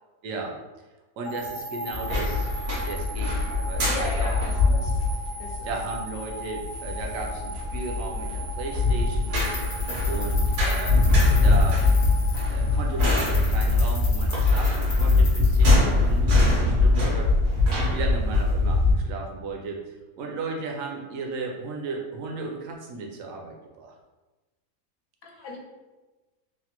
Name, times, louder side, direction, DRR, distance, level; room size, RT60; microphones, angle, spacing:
voice 1, 0.2-0.6 1.2-2.5 2.8-4.9 5.6-9.4 10.1-11.1 11.4-11.8 12.5-17.3 17.9-19.8 20.2-23.9, right 3 dB, 70° right, 1 dB, 0.9 m, -35 dB
sound 1, 1.2-13.4, equal, 40° right, 0.4 m, -38 dB
sound 2, 1.9-18.9, left 2 dB, 90° right, 1.3 m, -22 dB
voice 2, 3.9-5.0 5.4-5.7 25.2-25.6, left 2 dB, 75° left, -1 dB, 1.0 m, -37 dB
sound 3, 8.9-16.2, left 1 dB, 55° left, 1.1 m, -38 dB
3.3 x 2.1 x 2.8 m, 1.2 s
omnidirectional pair, 1.6 m